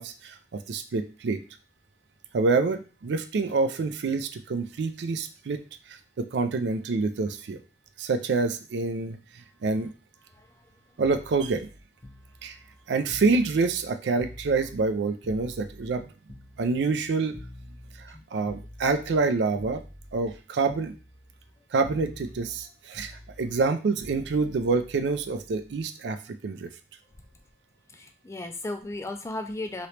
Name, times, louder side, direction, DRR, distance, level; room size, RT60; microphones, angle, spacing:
voice 1, 0.0-1.4 2.3-5.6 5.9-7.6 8.0-9.9 11.0-11.7 12.4-12.6 12.9-16.0 16.6-17.4 18.0-19.8 20.1-20.9 21.7-26.7, right 4 dB, 75° right, 9 dB, 0.4 m, -27 dB
sound 1, 11.0-14.9 15.2-19.3 19.6-20.4 20.7-21.6 21.8-25.8 27.0-27.3, left 1 dB, 35° left, 0.8 m, -47 dB
voice 2, 27.9-29.9, left 2 dB, 15° left, 6 dB, 0.3 m, -35 dB
3.0 x 2.9 x 3.2 m, 0.35 s
head